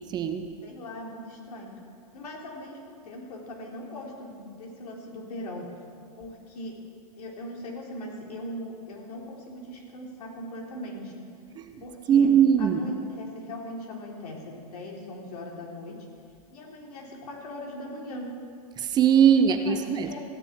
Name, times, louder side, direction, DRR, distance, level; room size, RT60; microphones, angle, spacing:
voice 1, 0.1-0.5 11.6-11.8 12.1-12.8 18.8-20.1, right 8 dB, 20° right, 8 dB, 0.7 m, -21 dB
voice 2, 0.6-1.7 2.1-5.8 6.2-6.8 7.2-11.2 11.8-12.3 12.6-16.0 16.5-18.3 19.3-20.2, left 1 dB, 75° left, -1 dB, 3.7 m, -40 dB
15.0 x 7.1 x 8.8 m, 2.2 s
hypercardioid pair, 140°, 20 cm